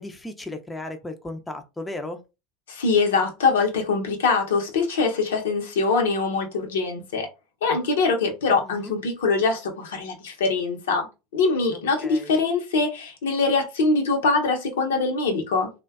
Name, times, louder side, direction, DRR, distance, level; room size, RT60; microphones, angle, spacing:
voice 1, 0.0-2.2 8.6-8.9 12.0-12.3, left 1 dB, 10° left, 0.4 m, -35 dB
voice 2, 2.7-7.3 7.6-11.1 11.3-15.7, left 4 dB, 80° left, 0.6 m, -23 dB
2.5 x 2.1 x 2.3 m
hypercardioid pair, 85°, 0 cm